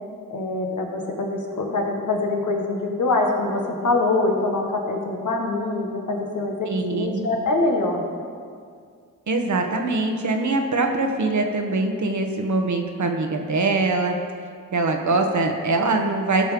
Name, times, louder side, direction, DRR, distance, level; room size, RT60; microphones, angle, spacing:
voice 1, 0.3-8.0, left 2 dB, 70° left, 1 dB, 1.7 m, -24 dB
voice 2, 6.7-7.3 9.3-14.2 14.7-16.5, right 3 dB, 65° right, 4 dB, 1.3 m, -23 dB
15.0 x 5.4 x 5.3 m, 2.2 s
cardioid pair, 55°, 32 cm